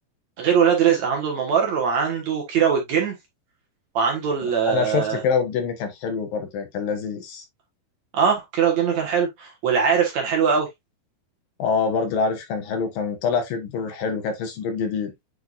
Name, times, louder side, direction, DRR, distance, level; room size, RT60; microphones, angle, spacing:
voice 1, 0.4-3.2 3.9-5.2 8.1-10.7, right 7 dB, 55° right, 2.5 m, -21 dB
voice 2, 4.4-7.4 11.6-15.1, left 5 dB, 70° left, 2.9 m, -25 dB
8.3 x 4.6 x 2.5 m
omnidirectional pair, 4.4 m